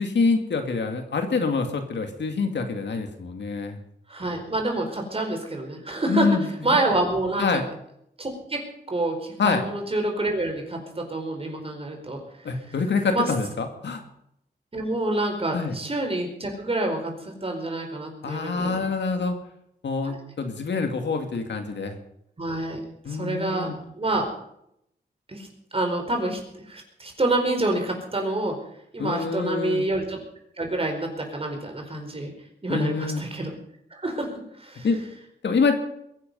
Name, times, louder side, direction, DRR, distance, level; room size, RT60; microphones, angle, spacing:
voice 1, 0.0-3.8 6.1-6.8 7.4-7.6 9.4-9.6 12.4-14.0 15.5-15.8 18.2-19.3 19.8-22.0 23.0-23.7 29.0-29.8 32.7-33.3 34.8-35.0 35.4-35.7, left 4 dB, 80° left, 5 dB, 2.2 m, -26 dB
voice 2, 4.1-6.3 6.6-7.6 8.2-12.2 13.1-13.3 14.7-19.0 20.0-20.2 22.4-22.8 23.1-23.7 24.0-24.3 25.3-25.5 25.7-26.4 26.7-28.6 28.9-30.2 30.6-32.3 32.6-33.5 33.9-34.3 34.6-34.9, right 2 dB, 30° right, 3 dB, 4.7 m, -27 dB
22.0 x 10.5 x 5.4 m, 0.75 s
wide cardioid pair, 100°, 18 cm